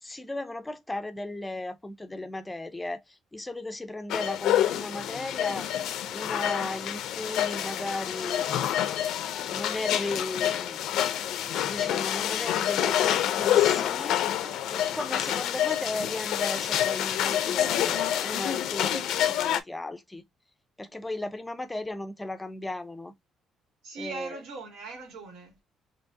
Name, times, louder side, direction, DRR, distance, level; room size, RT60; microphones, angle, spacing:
voice 1, 0.0-5.7 6.1-8.5 9.5-10.8 11.6-14.2 14.7-20.2 20.8-23.1 24.0-24.4, left 2 dB, 10° left, 0.5 m, -36 dB
sound 1, 4.1-19.6, left 11 dB, 70° left, 0.5 m, -27 dB
voice 2, 14.4-14.8 23.8-25.6, right 3 dB, 90° right, 2.1 m, -41 dB
4.6 x 2.8 x 2.7 m
cardioid pair, 180°, 0 cm